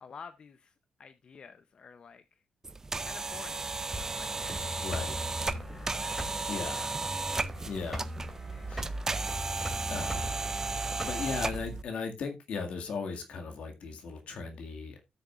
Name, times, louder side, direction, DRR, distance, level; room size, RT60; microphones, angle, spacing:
voice 1, 0.0-2.4 3.0-5.9 6.2-8.0 8.5-8.7, left 6 dB, 45° left, 11 dB, 0.6 m, -52 dB
sound 1, 2.6-11.8, right 3 dB, 25° right, 0.5 m, -34 dB
sound 2, 3.9-11.5, equal, 5° right, 2.6 m, -40 dB
voice 2, 4.8-5.2 6.0-6.9 7.7-8.1 8.7-9.0 9.9-10.3 11.0-15.0, left 5 dB, 75° left, 4 dB, 1.9 m, -37 dB
16.5 x 6.6 x 2.4 m, 0.22 s
cardioid pair, 120°, 2 cm